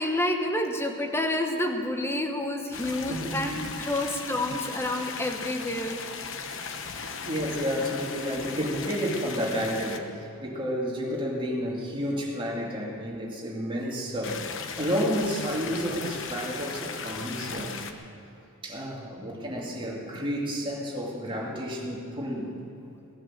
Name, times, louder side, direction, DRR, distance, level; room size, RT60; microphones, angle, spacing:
voice 1, 0.0-6.0, left 1 dB, 10° left, 3 dB, 1.2 m, -29 dB
sound 1, 2.7-10.0 14.2-17.9, left 5 dB, 60° left, 1.0 m, -37 dB
voice 2, 3.1-3.4 3.9-4.1 6.5-6.7 7.2-10.1 10.4-14.5 14.8-17.8 18.6-22.5, equal, 20° right, -3 dB, 2.5 m, -31 dB
18.0 x 10.5 x 7.5 m, 3.0 s
head